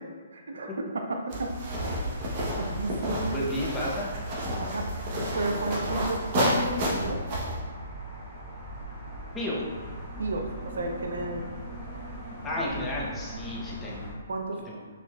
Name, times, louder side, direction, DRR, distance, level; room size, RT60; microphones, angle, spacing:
voice 1, 0.3-1.5 2.6-3.5 4.6-4.9 5.3-7.2 10.2-11.5 14.3-14.6, right 2 dB, 70° right, 3 dB, 0.5 m, -32 dB
sound 1, 1.3-7.6, equal, 40° right, 0.9 m, -30 dB
sound 2, 2.1-14.1, equal, 5° right, 1.1 m, -40 dB
voice 2, 3.3-4.1 9.3-9.6 12.4-14.0 14.7-14.8, left 1 dB, 10° left, -5 dB, 0.7 m, -32 dB
4.4 x 2.9 x 2.3 m, 1.5 s
hypercardioid pair, 135°, 0 cm